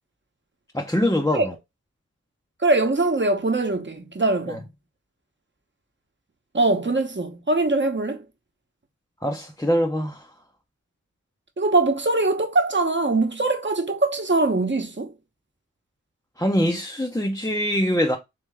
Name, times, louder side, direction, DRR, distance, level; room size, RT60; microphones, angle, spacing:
voice 1, 0.7-1.5 4.5-4.6 9.2-10.3 16.4-18.2, equal, 10° left, 0.6 m, -23 dB
voice 2, 2.6-4.7 6.5-8.2 11.6-15.1, right 2 dB, 35° right, 1.0 m, -22 dB
3.4 x 3.4 x 3.3 m
wide cardioid pair, 55°, 31 cm